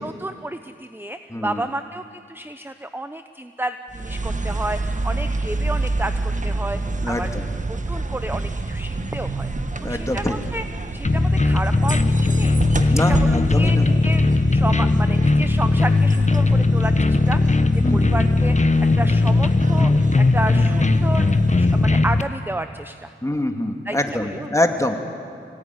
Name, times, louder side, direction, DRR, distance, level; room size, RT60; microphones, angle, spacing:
voice 1, 0.0-7.3 7.7-9.5 9.8-10.6 10.9-12.6 12.9-14.2 14.5-17.4 17.7-18.7 19.0-21.3 21.5-23.1 23.8-24.5, right 1 dB, 10° right, 9 dB, 0.8 m, -31 dB
voice 2, 1.3-1.6 7.0-7.5 9.8-10.4 12.9-13.9 17.8-18.1 23.2-25.0, left 1 dB, 15° left, 4 dB, 2.5 m, -24 dB
sound 1, 3.9-22.3, right 2 dB, 35° right, 1.6 m, -29 dB
sound 2, 11.0-22.2, left 2 dB, 35° left, 1.2 m, -18 dB
23.5 x 18.0 x 9.8 m, 2.4 s
cardioid pair, 45°, 21 cm